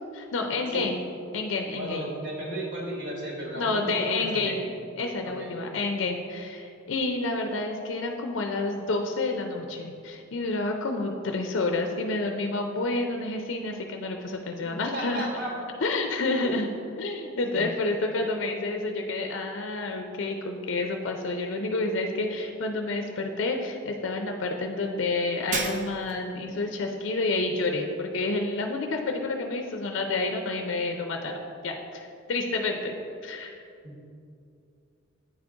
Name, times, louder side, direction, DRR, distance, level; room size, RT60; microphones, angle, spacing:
voice 1, 0.1-1.0 1.3-2.1 3.5-4.6 5.0-15.3 15.8-16.7 17.0-32.9 33.2-33.6, left 3 dB, 65° left, 4 dB, 0.5 m, -29 dB
voice 2, 1.7-4.7 5.2-5.5 14.6-15.5 16.4-16.6 17.6-17.7 33.8-33.9, right 2 dB, 60° right, -3 dB, 1.5 m, -34 dB
Shatter, 25.5-26.3, right 4 dB, 40° right, 0.5 m, -32 dB
8.7 x 3.6 x 3.8 m, 2.5 s
head